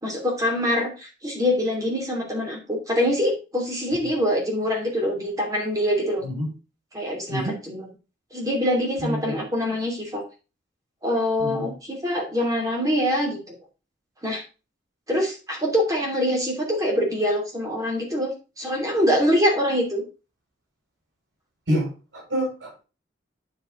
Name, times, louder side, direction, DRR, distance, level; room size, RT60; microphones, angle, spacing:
voice 1, 0.0-6.2 6.9-7.8 8.3-10.2 11.0-13.5 14.2-14.4 15.1-20.0, equal, 20° right, -1 dB, 2.9 m, -24 dB
voice 2, 9.0-9.4 11.4-11.7 21.7-22.8, equal, 80° right, -3 dB, 5.1 m, -28 dB
9.5 x 5.6 x 3.7 m, 0.31 s
head